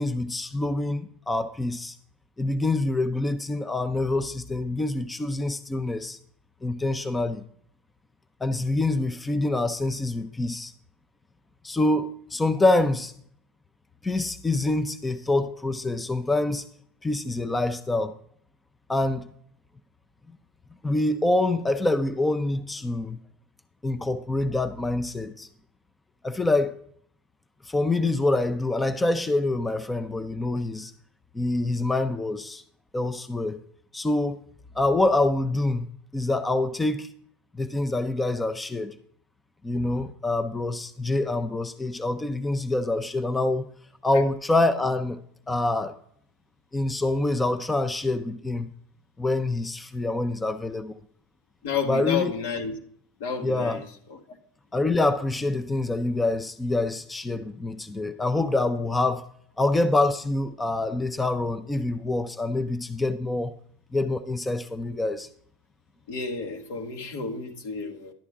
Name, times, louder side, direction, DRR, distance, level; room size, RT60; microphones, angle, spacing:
voice 1, 0.0-2.0 2.4-6.2 6.6-7.4 8.4-10.7 11.6-13.1 14.0-16.6 17.0-18.2 18.9-19.3 20.3-20.4 20.8-23.2 23.8-25.5 26.2-26.7 27.6-30.9 31.3-32.6 32.9-33.6 33.9-34.4 34.7-35.9 36.1-37.1 37.5-38.9 39.6-43.7 44.0-45.2 45.5-46.0 46.7-48.7 49.2-50.9 51.9-52.3 53.4-53.8 54.7-59.2 59.6-63.6 63.9-65.3, left 2 dB, 10° left, 0.5 m, -26 dB
voice 2, 51.6-52.8 53.2-53.8 54.1-54.4 66.1-68.1, left 5 dB, 75° left, 1.6 m, -31 dB
11.5 x 8.3 x 3.6 m
supercardioid pair, 130°, 0 cm